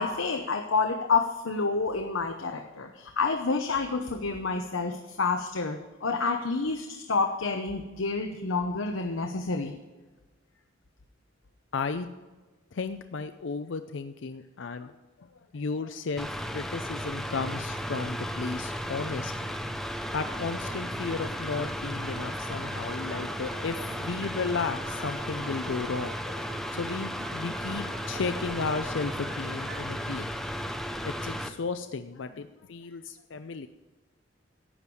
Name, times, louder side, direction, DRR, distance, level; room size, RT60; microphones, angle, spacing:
voice 1, 0.0-9.7, left 4 dB, 90° left, 4 dB, 0.9 m, -29 dB
voice 2, 11.7-12.1 12.7-19.5 20.1-26.2 26.7-30.3 31.0-33.7, left 4 dB, 70° left, 9 dB, 0.5 m, -34 dB
Mechanical fan, 16.2-31.5, equal, ahead, 0.6 m, -35 dB
sound 1, 20.2-30.2, right 2 dB, 80° right, 2.8 m, -46 dB
12.5 x 8.7 x 4.8 m, 1.2 s
head